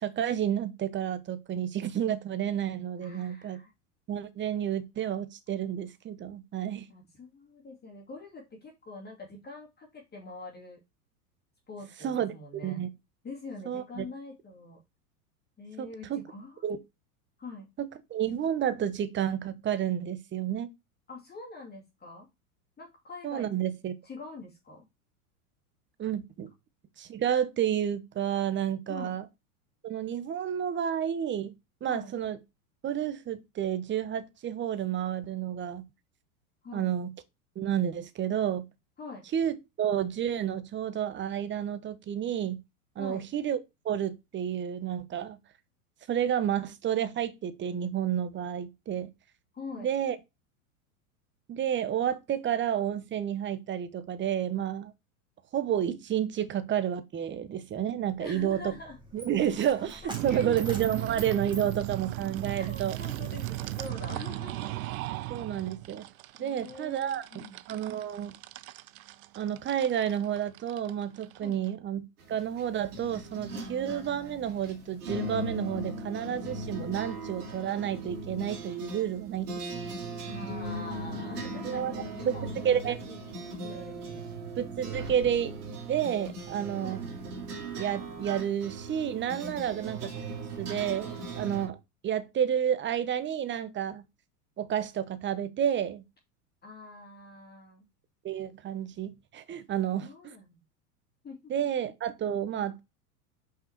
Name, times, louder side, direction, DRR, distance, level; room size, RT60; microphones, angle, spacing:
voice 1, 0.0-3.6 4.1-6.9 12.0-12.3 12.6-12.9 13.6-14.0 15.8-16.2 16.6-16.8 17.8-20.7 23.2-23.9 26.0-26.5 27.0-29.2 29.8-31.5 31.8-32.4 32.8-35.8 36.7-37.1 37.5-38.6 39.3-42.6 43.0-43.6 43.8-45.4 46.1-49.1 49.8-50.2 51.5-54.9 55.5-58.6 59.1-63.0 65.3-66.1 66.4-68.4 69.3-72.0 72.3-79.8 81.6-81.9 82.2-82.3 82.6-83.0 84.6-85.5 85.9-87.0 87.7-90.1 90.6-91.8 92.0-94.1 94.6-96.0 98.2-100.4 101.5-102.8, right 9 dB, 25° right, 1.0 m, -30 dB
voice 2, 3.0-3.7 6.9-10.8 11.7-12.8 13.2-14.8 15.6-16.6 17.4-17.7 21.1-22.3 22.8-23.5 24.0-24.9 28.9-29.2 31.9-32.1 36.6-37.0 39.0-39.3 43.0-43.3 49.5-49.9 58.2-59.0 59.5-59.6 60.0-60.6 62.6-65.0 66.4-67.6 71.4-71.6 80.2-84.2 86.7-87.0 89.7-89.9 96.6-97.9 99.9-100.6 101.2-101.4, left 3 dB, 20° left, 2.3 m, -45 dB
Coin (dropping), 58.0-64.1, right 2 dB, 10° right, 2.1 m, -48 dB
sound 1, 60.1-71.7, right 18 dB, 65° right, 0.6 m, -37 dB
sound 2, 72.2-91.7, right 2 dB, 80° right, 3.3 m, -39 dB
5.6 x 5.1 x 4.4 m
hypercardioid pair, 100°, 45 cm